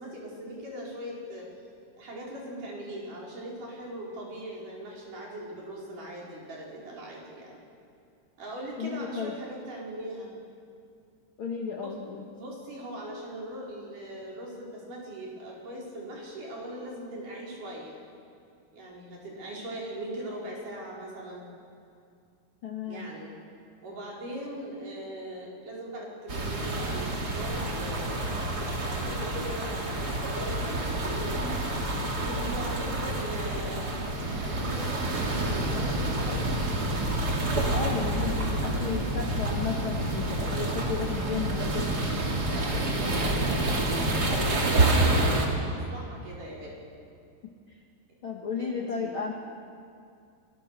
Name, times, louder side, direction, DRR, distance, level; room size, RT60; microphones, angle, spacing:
voice 1, 0.0-1.5 2.0-7.5 8.4-10.3 11.8-11.9 12.3-18.0 18.7-21.5 22.8-23.3 23.8-28.5 28.8-31.8 32.2-33.9 34.3-36.6 42.5-46.8 48.6-49.1, right 1 dB, 55° right, -4 dB, 6.4 m, -40 dB
voice 2, 8.8-9.3 11.4-12.2 22.6-23.1 37.7-41.9 47.7-47.8 48.2-49.3, left 5 dB, 50° left, 1 dB, 1.6 m, -33 dB
sound 1, 26.3-45.5, right 1 dB, 30° right, 2.6 m, -28 dB
27.0 x 21.0 x 6.7 m, 2.4 s
omnidirectional pair, 4.5 m